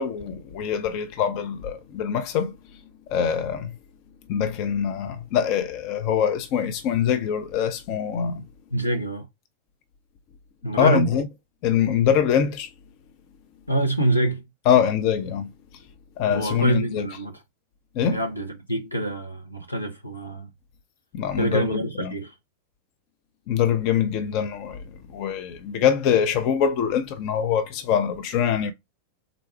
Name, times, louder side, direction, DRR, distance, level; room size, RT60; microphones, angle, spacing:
voice 1, 0.0-2.5 3.1-3.7 4.3-8.4 10.8-11.3 11.6-12.7 14.7-15.5 16.2-17.1 18.0-18.2 21.1-22.1 23.5-24.8 25.1-28.7, left 8 dB, 45° left, 0.6 m, -23 dB
voice 2, 8.7-9.2 10.6-11.1 13.7-14.4 16.3-17.3 18.1-20.5 21.4-22.3, right 1 dB, 90° left, 0.9 m, -25 dB
3.9 x 2.3 x 4.4 m
figure-of-eight pair, 90°, 0 cm